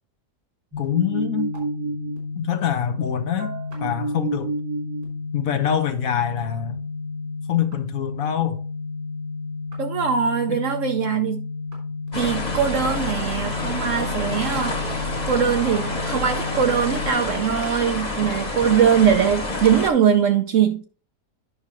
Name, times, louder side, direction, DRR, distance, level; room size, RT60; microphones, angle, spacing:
sound 1, 0.7-17.1, left 2 dB, 85° right, 3.8 m, -31 dB
voice 1, 0.8-1.5 2.3-4.5 5.3-6.9 7.5-8.6 10.5-10.6, left 9 dB, 65° left, 1.0 m, -25 dB
voice 2, 9.8-11.4 12.1-20.8, right 8 dB, 65° right, 0.8 m, -21 dB
sound 2, 12.1-19.9, left 2 dB, 25° left, 1.2 m, -28 dB
9.7 x 5.8 x 3.0 m
omnidirectional pair, 1.8 m